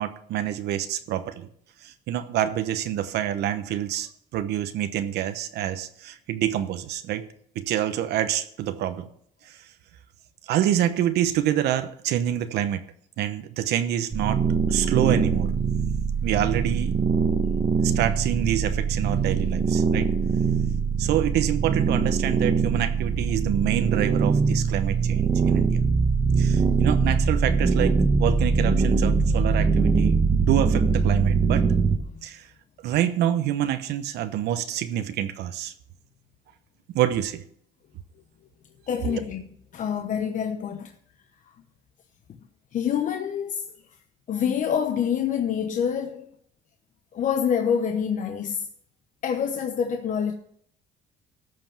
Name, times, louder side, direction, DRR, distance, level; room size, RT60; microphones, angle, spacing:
voice 1, 0.0-1.5 1.8-7.2 7.5-9.1 9.5-9.6 10.5-12.8 13.2-14.4 14.7-15.5 16.2-16.9 17.8-20.1 21.0-25.8 26.4-31.7 32.2-32.4 32.8-35.7 36.9-37.4 39.1-39.2, right 11 dB, 75° right, 0.9 m, -27 dB
sound 1, 14.1-32.0, right 5 dB, 30° right, 1.2 m, -22 dB
voice 2, 38.9-40.9 42.7-43.6 44.3-46.3 47.1-48.7 49.2-50.3, left 8 dB, 50° left, 0.9 m, -26 dB
13.5 x 5.3 x 7.3 m
cardioid pair, 110°, 17 cm